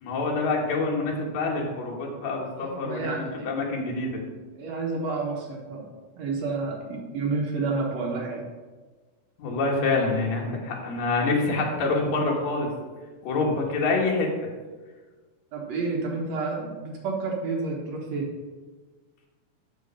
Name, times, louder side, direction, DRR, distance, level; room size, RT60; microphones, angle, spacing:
voice 1, 0.0-4.2 9.4-12.7 13.2-14.3, left 3 dB, 60° left, -2 dB, 2.5 m, -26 dB
voice 2, 2.6-3.5 4.5-5.9 6.2-8.4 15.5-18.3, right 3 dB, 60° right, -1 dB, 2.2 m, -30 dB
7.0 x 6.4 x 5.6 m, 1.3 s
omnidirectional pair, 3.7 m